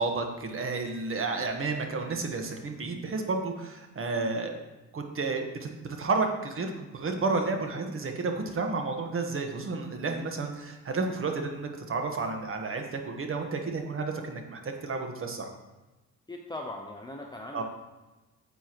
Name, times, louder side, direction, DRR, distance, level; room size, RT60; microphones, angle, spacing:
voice 1, 0.0-4.6 4.9-15.5 17.5-17.6, right 3 dB, 45° right, 4 dB, 1.4 m, -31 dB
voice 2, 16.3-17.6, left 2 dB, 15° left, 1 dB, 0.8 m, -39 dB
9.6 x 8.0 x 3.1 m, 1.1 s
cardioid pair, 90°, 30 cm